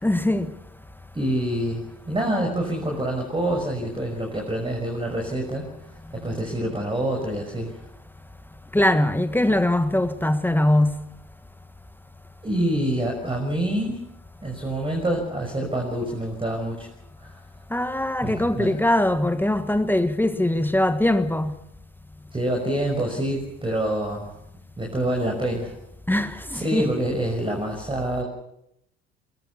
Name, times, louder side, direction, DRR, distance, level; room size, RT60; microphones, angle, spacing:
voice 1, 0.0-0.5 6.2-6.4 8.7-11.0 17.7-21.5 26.1-26.9, left 1 dB, 5° left, 1.5 m, -22 dB
voice 2, 1.1-5.6 6.1-7.8 12.4-14.0 14.4-16.9 17.2-17.3 18.2-18.8 22.3-24.3 24.8-25.7 26.5-28.2, right 1 dB, 15° right, 6.1 m, -26 dB
23.0 x 21.0 x 7.0 m
hypercardioid pair, 60°, 32 cm